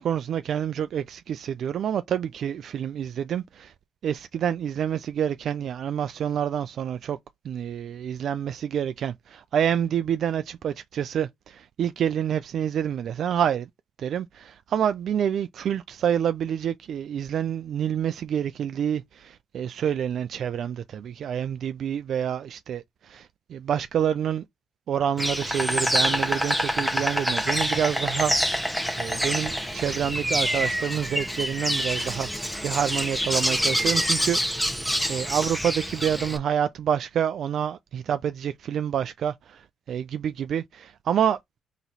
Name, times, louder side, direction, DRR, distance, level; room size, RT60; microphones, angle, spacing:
voice 1, 0.0-3.7 4.0-7.2 7.4-13.7 14.0-24.4 24.9-28.7 29.0-34.7 35.1-39.6 39.9-41.6, right 9 dB, 65° right, 0.3 m, -28 dB
Insect, 25.2-36.4, equal, 5° left, 1.0 m, -26 dB
4.0 x 3.0 x 4.0 m
cardioid pair, 90°, 0 cm